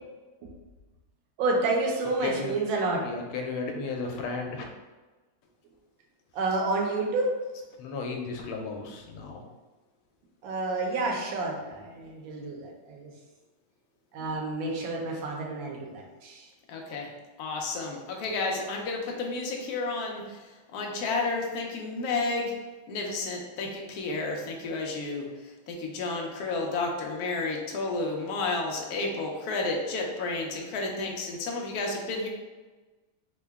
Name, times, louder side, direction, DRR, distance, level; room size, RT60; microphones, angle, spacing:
voice 1, 1.4-3.1 6.3-7.4 10.4-13.1 14.1-16.5, right 2 dB, 75° right, 0 dB, 1.4 m, -29 dB
voice 2, 2.2-2.6 3.0-4.7 7.8-9.4, left 3 dB, 90° left, 2 dB, 1.4 m, -34 dB
voice 3, 16.7-17.1 17.4-22.5 22.9-32.3, left 3 dB, 70° left, 0 dB, 0.9 m, -31 dB
3.8 x 2.1 x 3.4 m, 1.2 s
omnidirectional pair, 2.2 m